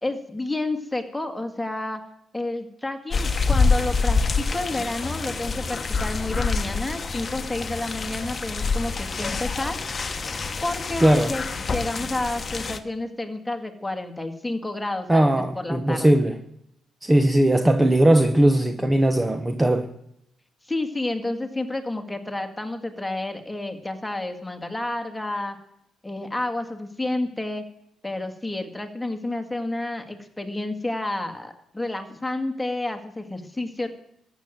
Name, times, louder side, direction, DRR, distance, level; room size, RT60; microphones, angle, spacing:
voice 1, 0.0-2.0 2.3-9.8 10.6-11.4 11.7-16.2 20.7-25.6 26.0-27.7 28.0-33.9, left 2 dB, 10° left, 5 dB, 2.0 m, -30 dB
sound 1, 3.1-12.8, left 4 dB, 35° left, 1.1 m, -26 dB
voice 2, 11.0-11.3 15.1-16.4 17.0-19.9, right 1 dB, 15° right, 8 dB, 1.0 m, -19 dB
14.5 x 7.9 x 9.1 m, 0.76 s
cardioid pair, 90°, 0 cm